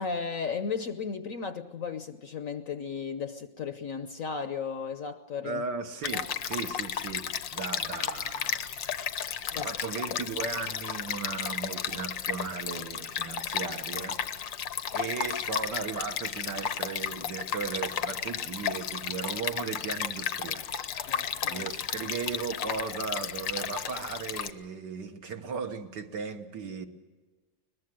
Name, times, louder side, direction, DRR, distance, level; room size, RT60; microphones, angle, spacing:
voice 1, 0.0-5.6 6.1-6.3 9.5-9.7 21.1-21.7, left 5 dB, 55° left, 1.1 m, -35 dB
voice 2, 5.4-7.2 7.5-14.7 14.9-26.9, right 5 dB, 65° right, 2.0 m, -37 dB
Stream, 6.0-24.5, left 8 dB, 75° left, 1.7 m, -33 dB
22.5 x 20.5 x 7.7 m
omnidirectional pair, 2.1 m